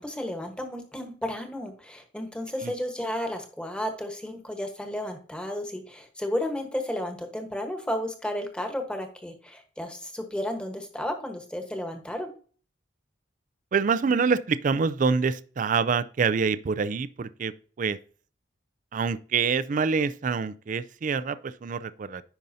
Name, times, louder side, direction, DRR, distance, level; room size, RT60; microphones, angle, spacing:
voice 1, 0.0-12.3, left 1 dB, 5° left, 1.2 m, -33 dB
voice 2, 13.7-18.0 18.9-22.2, right 5 dB, 45° right, 0.4 m, -26 dB
10.0 x 5.3 x 2.7 m
head